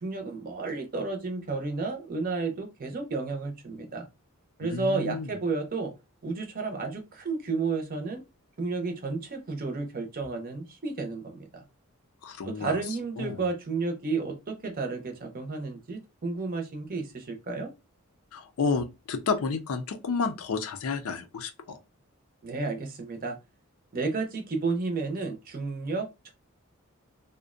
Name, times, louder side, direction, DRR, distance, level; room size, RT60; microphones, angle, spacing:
voice 1, 0.0-4.1 4.6-5.9 6.2-8.2 8.6-11.6 12.4-17.7 22.4-23.4 23.9-26.3, right 3 dB, 45° right, 0.6 m, -32 dB
voice 2, 4.6-5.3 12.2-12.8 13.2-13.5 18.3-21.8, left 4 dB, 80° left, 0.4 m, -31 dB
2.5 x 2.1 x 2.4 m
head